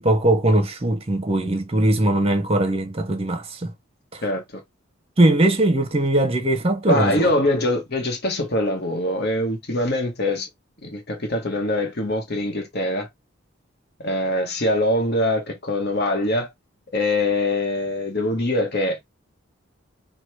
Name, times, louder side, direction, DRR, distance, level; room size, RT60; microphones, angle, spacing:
voice 1, 0.0-3.7 4.1-4.2 5.2-7.3, right 1 dB, 30° right, 1.0 m, -20 dB
voice 2, 4.2-4.6 6.9-10.5 10.8-13.1 14.0-16.5 16.9-19.1, left 1 dB, 50° left, 1.1 m, -23 dB
4.9 x 2.4 x 4.5 m
head